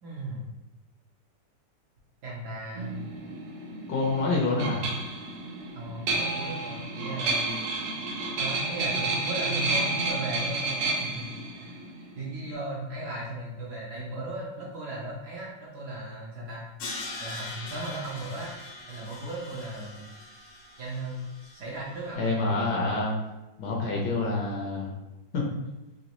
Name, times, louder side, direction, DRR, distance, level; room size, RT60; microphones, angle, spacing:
voice 1, 0.0-0.5 2.2-3.0 5.7-7.5 8.4-11.7 12.1-16.7 17.2-18.5 18.9-20.1 20.8-22.3, right 1 dB, 65° right, -4 dB, 1.2 m, -37 dB
sound 1, 2.8-12.5, right 3 dB, 85° right, 1.5 m, -31 dB
voice 2, 3.9-4.9 22.2-23.1 23.6-24.9 25.3-25.4, left 3 dB, 65° left, -2 dB, 1.3 m, -27 dB
Crash cymbal, 16.8-21.8, left 2 dB, 85° left, 1.8 m, -41 dB
4.1 x 3.0 x 2.9 m, 1.0 s
omnidirectional pair, 2.2 m